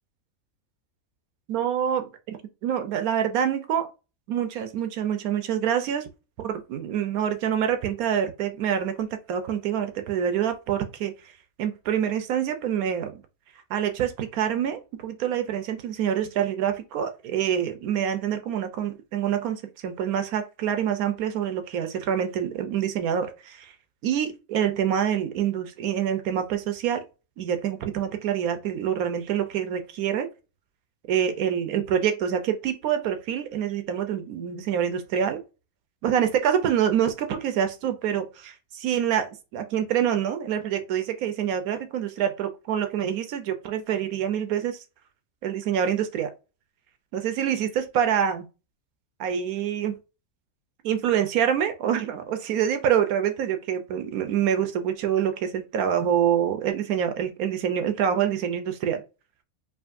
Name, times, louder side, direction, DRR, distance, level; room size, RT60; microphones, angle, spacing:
voice 1, 1.5-2.1 2.6-3.9 4.3-6.1 6.4-11.1 11.6-13.2 13.7-23.7 24.0-27.0 27.4-30.3 31.1-35.4 36.0-44.8 45.4-46.3 47.1-48.4 49.2-50.0 50.8-59.0, right 9 dB, 85° right, 1.1 m, -26 dB
4.8 x 2.5 x 2.6 m
omnidirectional pair, 1.5 m